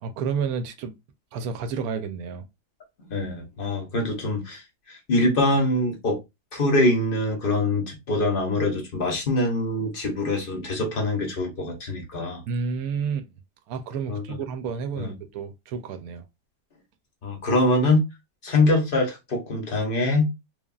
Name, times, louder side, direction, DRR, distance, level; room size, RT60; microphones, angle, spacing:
voice 1, 0.0-0.9 1.3-2.4 12.5-13.3 13.7-16.2, right 6 dB, 70° right, 1.0 m, -30 dB
voice 2, 3.1-4.6 4.9-6.2 6.5-12.4 14.1-14.4 15.0-15.1 17.2-18.0 18.4-20.3, left 2 dB, 50° left, 0.7 m, -24 dB
3.2 x 2.2 x 2.3 m
omnidirectional pair, 1.7 m